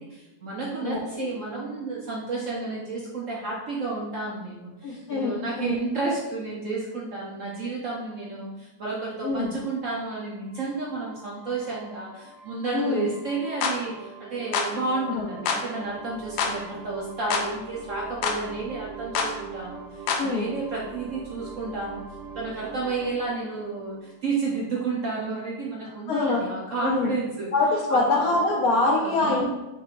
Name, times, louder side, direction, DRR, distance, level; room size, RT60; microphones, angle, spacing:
voice 1, 0.0-22.0 22.3-27.5 27.9-28.3 29.0-29.5, right 3 dB, 60° right, -5 dB, 0.8 m, -31 dB
voice 2, 0.8-1.3 4.8-5.8 9.2-9.6 12.7-13.1 15.1-15.3 20.2-20.5 26.1-26.4 26.8-27.1 27.5-29.5, left 3 dB, 70° left, -1 dB, 0.9 m, -24 dB
sound 1, 10.4-24.9, right 5 dB, 85° right, 1.4 m, -43 dB
sound 2, 13.6-13.8 14.5-14.7 15.5-15.6 16.4-16.6 17.3-17.5 18.2-18.4 19.2-19.3 20.1-20.3, left 5 dB, 90° left, 1.3 m, -25 dB
5.6 x 3.2 x 2.5 m, 1.0 s
omnidirectional pair, 2.0 m